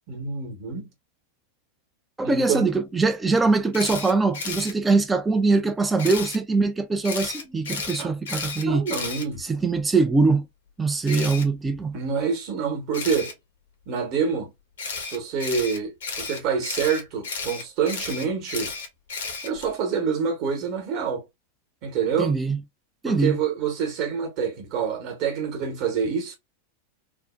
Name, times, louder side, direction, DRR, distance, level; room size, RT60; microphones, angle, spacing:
voice 1, 0.1-0.9 2.2-2.7 7.4-7.6 8.0-8.1 8.6-9.4 11.9-13.3 13.9-14.5 15.0-18.7 19.4-21.2 21.8-22.3 23.0-26.4, right 6 dB, 40° right, 0.9 m, -27 dB
voice 2, 2.2-8.8 9.4-10.5 10.8-11.9 22.2-22.6 23.0-23.4, right 3 dB, 10° right, 0.3 m, -22 dB
Camera, 3.7-4.7 6.0-6.4 7.0-9.8 11.1-11.4 12.9-13.3 14.8-19.7, left 4 dB, 65° left, 0.7 m, -33 dB
2.6 x 2.1 x 2.3 m
figure-of-eight pair, 90°, 0 cm